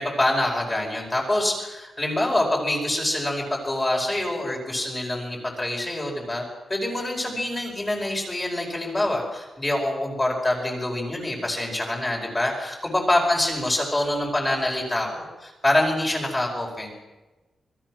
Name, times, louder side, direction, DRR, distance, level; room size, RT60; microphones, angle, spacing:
voice 1, 0.0-6.4 6.7-16.9, left 1 dB, 15° left, -1 dB, 5.0 m, -25 dB
26.5 x 21.5 x 6.2 m, 1.1 s
wide cardioid pair, 165°, 0 cm